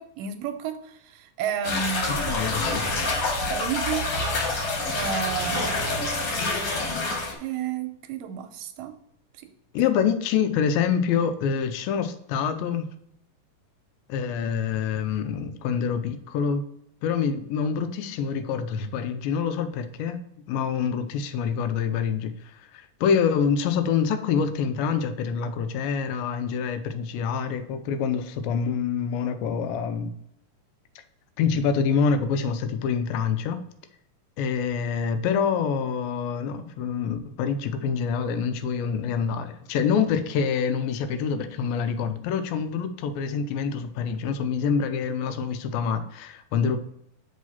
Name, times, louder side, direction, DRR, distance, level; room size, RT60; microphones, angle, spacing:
voice 1, 0.0-2.3 3.5-4.0 4.9-6.1 7.4-9.0 9.3-9.5, right 8 dB, 85° right, 7 dB, 2.2 m, -32 dB
sound 1, 1.6-7.3, left 2 dB, 50° left, 2.2 m, -27 dB
voice 2, 2.2-3.3 9.7-12.9 14.1-16.6 17.0-20.2 20.5-22.3 22.7-30.1 31.4-33.6 34.4-46.8, left 6 dB, 85° left, 9 dB, 2.4 m, -26 dB
6.3 x 4.7 x 5.6 m, 0.75 s
omnidirectional pair, 4.1 m